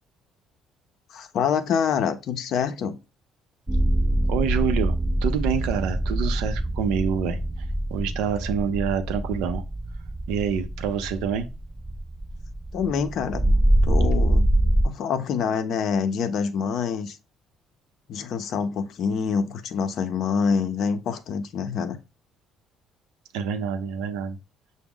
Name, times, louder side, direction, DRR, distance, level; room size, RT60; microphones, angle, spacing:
voice 1, 1.1-3.0 12.7-13.4 13.8-14.5 14.8-17.2 18.1-22.0, left 6 dB, 65° left, 0.5 m, -26 dB
sound 1, 3.7-14.8, right 1 dB, 15° right, 0.4 m, -24 dB
voice 2, 4.3-7.4 7.9-9.6 10.3-11.5 23.3-24.4, right 7 dB, 85° right, 0.5 m, -27 dB
5.9 x 2.1 x 3.6 m
cardioid pair, 95°, 0 cm